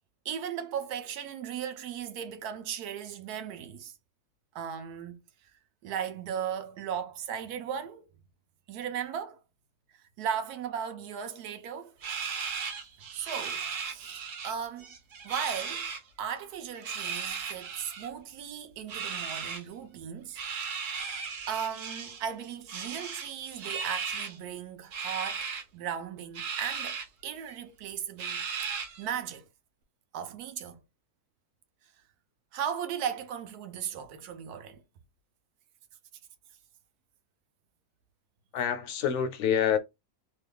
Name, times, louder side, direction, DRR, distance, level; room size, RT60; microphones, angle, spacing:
voice 1, 0.2-4.0 4.5-5.5 5.8-8.1 8.7-9.4 9.9-11.9 13.1-14.9 15.2-15.9 16.2-20.4 21.5-25.5 25.7-28.7 29.0-29.4 30.1-30.8 32.5-34.8, right 8 dB, 90° right, 1.1 m, -37 dB
sound 1, 12.0-14.5 14.8-16.0 16.7-18.1 18.9-19.6 20.4-22.2 22.7-24.4 24.9-25.6 26.3-27.1 27.5-27.6 28.2-29.1, right 6 dB, 65° right, 1.0 m, -36 dB
voice 2, 38.5-39.8, left 8 dB, 65° left, 0.8 m, -27 dB
3.0 x 2.2 x 3.3 m
omnidirectional pair, 1.6 m